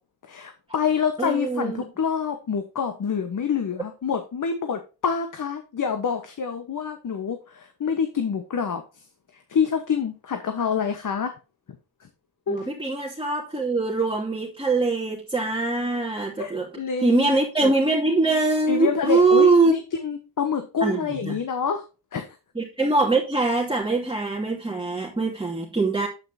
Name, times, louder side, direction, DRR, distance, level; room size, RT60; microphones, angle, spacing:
voice 1, 0.2-9.0 9.3-11.3 12.5-12.7 16.4-17.7 18.7-21.8 22.1-22.4, left 6 dB, 50° left, 7 dB, 1.3 m, -27 dB
voice 2, 1.2-1.8 12.5-16.7 17.0-19.7 20.8-21.4 22.5-26.1, right 3 dB, 10° right, -4 dB, 2.7 m, -22 dB
9.0 x 8.9 x 2.8 m, 0.31 s
cardioid pair, 70°, 41 cm